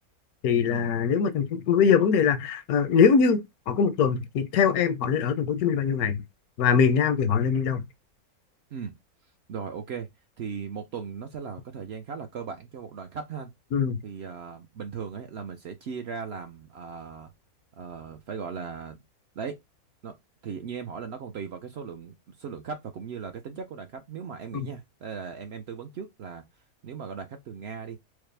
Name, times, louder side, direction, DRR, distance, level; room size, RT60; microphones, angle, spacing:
voice 1, 0.4-3.4 3.7-6.2 6.6-7.8 13.7-14.0 24.5-24.7, left 6 dB, 85° left, 1.1 m, -22 dB
voice 2, 9.5-10.1 10.4-13.5 14.0-17.3 17.7-19.0 19.4-19.6 20.0-20.2 20.4-26.4 26.8-28.0, right 6 dB, 65° right, 0.7 m, -37 dB
4.8 x 2.0 x 3.2 m
omnidirectional pair, 1.5 m